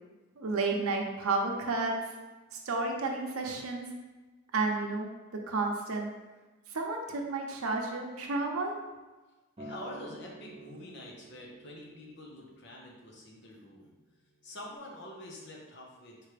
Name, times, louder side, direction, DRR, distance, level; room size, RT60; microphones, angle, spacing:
voice 1, 0.4-1.9 2.5-3.9 4.5-5.1 5.5-6.1 6.7-8.7, right 3 dB, 90° right, 1 dB, 0.7 m, -31 dB
voice 2, 9.6-13.9 14.4-16.3, left 1 dB, 50° left, -1 dB, 0.9 m, -46 dB
Acoustic guitar, 9.6-13.9 14.7-14.8, right 3 dB, 25° right, 0.8 m, -50 dB
4.4 x 3.3 x 3.3 m, 1.2 s
head